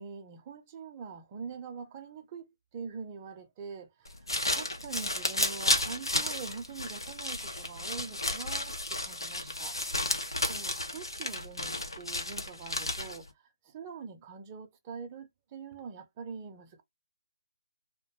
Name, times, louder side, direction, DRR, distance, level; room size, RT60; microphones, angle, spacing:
voice 1, 0.0-3.9 4.5-9.8 10.5-13.3 13.6-16.8, right 6 dB, 25° right, 0.6 m, -44 dB
sound 1, 4.0-13.3, left 2 dB, 85° left, 0.8 m, -32 dB
2.5 x 2.2 x 2.8 m
figure-of-eight pair, 150°, 2 cm